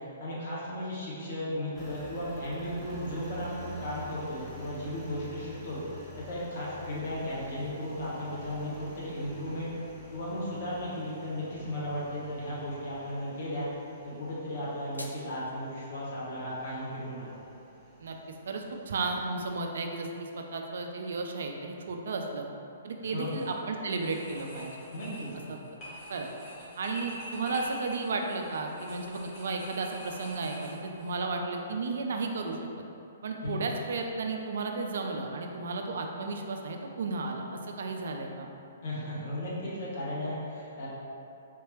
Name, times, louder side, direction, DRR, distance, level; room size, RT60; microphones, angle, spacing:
voice 1, 0.2-5.8 6.2-9.7 10.1-13.7 14.0-17.3 23.0-23.3 24.9-25.5 33.4-33.7 38.8-40.9, left 1 dB, 50° left, -7 dB, 1.1 m, -35 dB
Engine, 1.7-19.7, equal, 10° right, 0.6 m, -48 dB
sound 1, 14.5-15.5, left 1 dB, 90° left, 0.3 m, -47 dB
voice 2, 18.5-22.4 22.8-24.7 25.5-25.6 26.1-26.3 26.8-32.6 33.2-38.5, right 3 dB, 60° right, 3 dB, 0.3 m, -33 dB
sound 2, 23.2-23.5 23.9-31.1, equal, 30° left, 1.3 m, -46 dB
3.6 x 2.9 x 3.0 m, 2.7 s
figure-of-eight pair, 120°, 0 cm